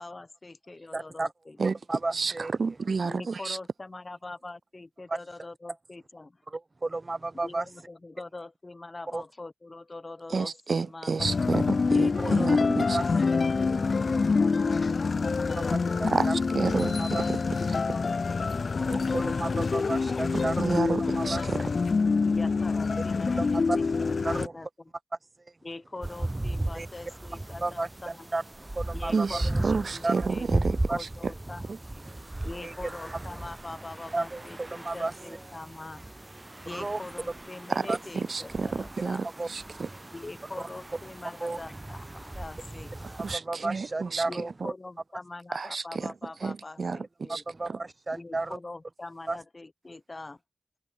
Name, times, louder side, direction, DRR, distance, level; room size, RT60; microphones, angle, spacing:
voice 1, 0.0-1.6 3.0-6.4 7.4-11.1 11.9-13.4 14.0-16.0 22.3-23.9 24.2-24.7 25.6-28.3 28.9-31.6 32.4-36.1 36.6-39.2 40.1-43.2 44.2-47.4 48.1-50.4, left 2 dB, 45° left, 5.3 m, -43 dB
voice 2, 0.9-1.3 1.9-2.5 5.1-5.2 6.5-7.6 9.1-9.2 12.2-12.4 12.9-13.0 16.0-16.3 17.0-17.2 18.8-21.4 23.4-23.8 24.2-24.5 26.7-26.9 27.6-28.4 28.7-29.3 30.0-30.3 30.9-31.0 32.6-32.9 34.1-35.1 36.7-37.0 37.9-38.0 39.4-39.5 40.6-40.7 41.4-41.6 43.2-44.5 47.3-48.6 49.3-49.4, right 2 dB, 45° right, 1.2 m, -32 dB
voice 3, 2.1-3.6 10.3-13.0 16.1-16.3 16.5-17.4 20.3-21.6 29.1-31.3 31.7-31.8 37.7-39.9 43.2-44.2 44.6-44.7 45.5-46.1 46.4-47.8, right 4 dB, 80° right, 1.0 m, -30 dB
sound 1, 11.2-24.5, left 4 dB, 80° left, 0.5 m, -26 dB
sound 2, 26.0-43.4, right 1 dB, 30° right, 1.0 m, -36 dB
open air
wide cardioid pair, 60°, 0 cm